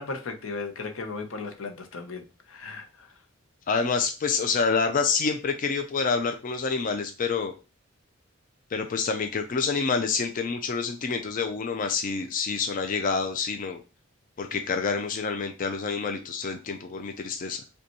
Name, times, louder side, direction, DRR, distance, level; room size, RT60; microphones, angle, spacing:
voice 1, 0.0-3.1, left 4 dB, 85° left, 0.7 m, -36 dB
voice 2, 3.7-7.5 8.7-13.8 14.4-17.6, left 5 dB, 45° left, 0.4 m, -27 dB
5.1 x 2.3 x 2.9 m
head